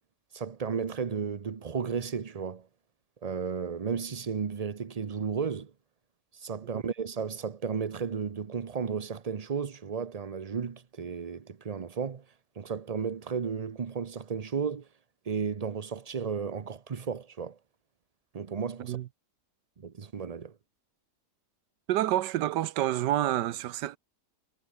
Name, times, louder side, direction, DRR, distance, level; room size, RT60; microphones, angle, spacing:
voice 1, 0.3-2.7 3.2-5.7 6.4-12.2 12.6-14.9 15.3-17.6 18.3-19.0 19.8-20.5, right 6 dB, 50° right, 0.4 m, -33 dB
voice 2, 21.9-24.0, right 13 dB, 85° right, 1.4 m, -28 dB
omnidirectional pair, 1.8 m